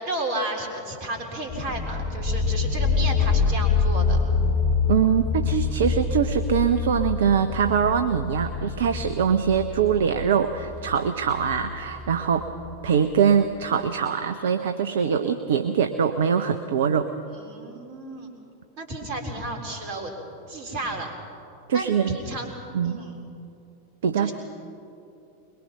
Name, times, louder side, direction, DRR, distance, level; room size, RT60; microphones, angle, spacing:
voice 1, 0.0-4.2 17.3-18.4 18.8-20.2 20.5-21.1 21.7-22.5 22.8-23.1 24.2-24.3, right 2 dB, 45° right, 2 dB, 4.1 m, -32 dB
sound 1, 1.5-12.9, left 5 dB, 40° left, 3.6 m, -26 dB
voice 2, 4.9-12.5 12.8-17.1 21.7-22.2 22.7-23.0 24.0-24.3, right 7 dB, 60° right, 9 dB, 0.9 m, -23 dB
22.5 x 22.0 x 6.0 m, 2.7 s
figure-of-eight pair, 90°, 0 cm